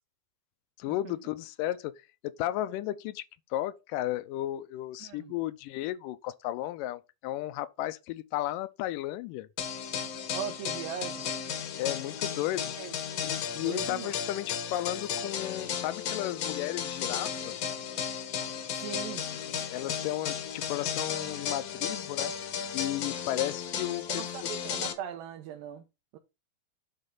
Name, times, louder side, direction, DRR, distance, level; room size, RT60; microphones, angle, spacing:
voice 1, 0.8-1.9 2.2-3.2 3.5-9.5 11.8-12.7 13.2-17.5 19.7-22.3 22.7-24.6, left 14 dB, 80° left, 2.1 m, -34 dB
voice 2, 5.0-5.4 10.3-11.3 12.8-12.9 13.6-14.1 18.7-19.3 24.1-25.8 26.1-26.2, right 9 dB, 80° right, 2.4 m, -39 dB
sound 1, 9.6-24.9, left 8 dB, 65° left, 1.7 m, -34 dB
9.8 x 4.0 x 4.0 m
omnidirectional pair, 4.2 m